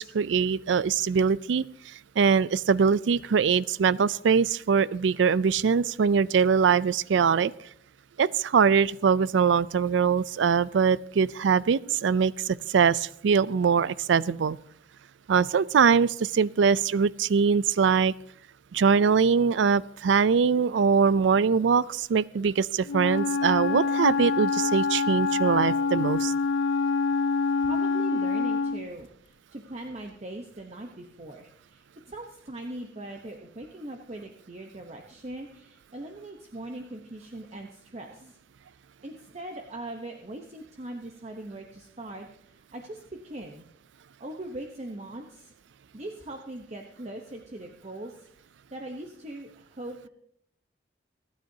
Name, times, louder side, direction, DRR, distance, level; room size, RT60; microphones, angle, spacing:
voice 1, 0.0-1.7 2.2-7.5 8.2-14.6 15.3-18.1 18.7-26.3, right 6 dB, 80° right, 19 dB, 0.4 m, -22 dB
Wind instrument woodwind instrument, 22.9-28.9, left 4 dB, 75° left, 0.4 m, -26 dB
voice 2, 27.6-38.4 38.6-38.8 39.0-43.6 44.2-45.5 45.9-50.1, right 1 dB, 35° right, 3 dB, 0.9 m, -41 dB
27.5 x 9.5 x 2.8 m, 0.70 s
head